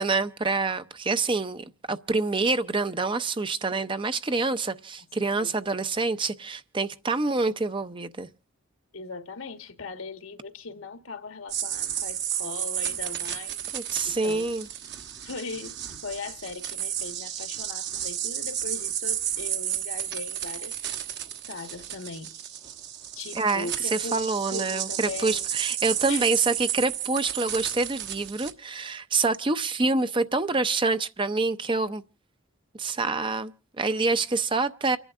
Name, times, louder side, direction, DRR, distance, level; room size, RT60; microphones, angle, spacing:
voice 1, 0.0-8.3 13.7-14.7 23.3-32.0 32.7-35.0, right 3 dB, 25° right, 0.6 m, -26 dB
voice 2, 8.9-13.6 14.0-14.5 15.2-15.7 16.0-20.7 21.5-22.3 23.1-25.5 26.1-26.3, left 4 dB, 75° left, 1.5 m, -39 dB
sound 1, 11.5-28.5, right 11 dB, 55° right, 1.2 m, -32 dB
29.5 x 11.0 x 2.5 m
head